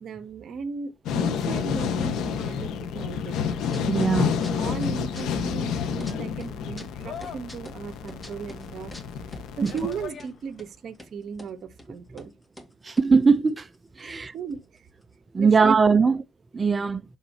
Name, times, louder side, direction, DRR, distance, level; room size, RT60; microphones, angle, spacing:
voice 1, 0.0-3.4 3.9-8.9 9.6-12.3 14.0-14.8 15.4-16.0, right 5 dB, 60° right, 1.1 m, -36 dB
sound 1, 1.0-10.1, left 7 dB, 85° left, 1.4 m, -29 dB
sound 2, 3.6-4.2 4.4-6.1 6.4-10.3 10.6-10.7 10.9-11.5 11.8-11.9 12.2-12.3 12.6-14.2 14.5-14.6 14.8-15.1, left 1 dB, 15° left, 1.9 m, -45 dB
voice 2, 3.8-4.3 9.6-9.7 12.8-13.7 14.0-14.3 15.3-16.2 16.5-17.0, right 5 dB, 30° right, 0.6 m, -20 dB
sound 3, 5.0-10.8, left 6 dB, 55° left, 1.6 m, -46 dB
11.5 x 4.0 x 2.8 m
cardioid pair, 90°, 0 cm